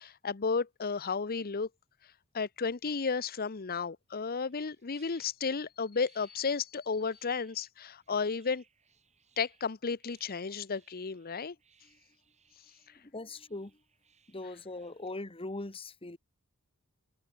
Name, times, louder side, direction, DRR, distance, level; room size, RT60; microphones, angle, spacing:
voice 1, 0.0-1.7 2.3-8.6 9.4-11.6, left 5 dB, 45° left, 0.8 m, -33 dB
sound 1, 4.1-15.1, right 6 dB, 35° right, 7.7 m, -68 dB
voice 2, 12.9-13.8 14.3-16.2, left 2 dB, 25° left, 1.5 m, -41 dB
head